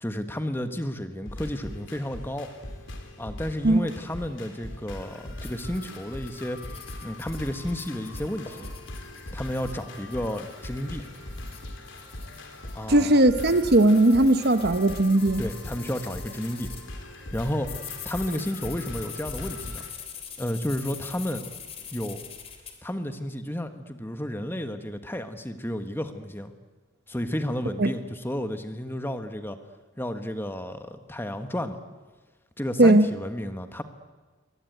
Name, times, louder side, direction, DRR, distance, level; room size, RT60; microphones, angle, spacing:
voice 1, 0.0-2.5 3.2-6.6 7.0-8.7 9.3-11.0 12.7-13.2 15.4-16.7 17.3-19.8 20.4-21.4 21.9-22.2 22.8-26.5 27.1-29.6 30.0-31.8 32.6-33.8, equal, 10° left, 8 dB, 1.4 m, -32 dB
sound 1, 1.3-19.9, left 1 dB, 70° left, 3.5 m, -40 dB
sound 2, 5.4-16.9 17.3-22.7, left 7 dB, 30° left, 3.2 m, -44 dB
voice 2, 12.9-15.4 27.8-27.9 32.8-33.1, right 1 dB, 55° right, 10 dB, 1.1 m, -18 dB
23.5 x 20.0 x 9.3 m, 1.3 s
head